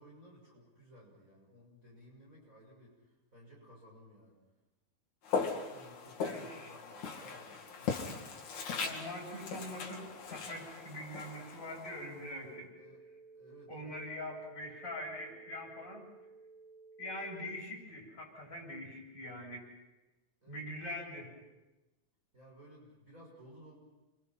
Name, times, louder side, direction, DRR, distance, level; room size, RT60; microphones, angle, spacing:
voice 1, 0.0-4.4 5.5-8.2 12.8-13.0 13.3-13.9 20.4-20.7 22.3-23.8, equal, 25° right, -2 dB, 6.6 m, -57 dB
Walk footsteps, 5.2-12.4, left 5 dB, 75° left, 3.7 m, -39 dB
voice 2, 6.2-6.7 8.8-12.7 13.7-16.0 17.0-19.7 20.5-21.3, left 1 dB, 35° left, -2 dB, 8.3 m, -43 dB
sound 1, 11.8-17.5, right 3 dB, 80° right, 5.7 m, -56 dB
29.0 x 25.0 x 5.9 m, 1.1 s
omnidirectional pair, 3.4 m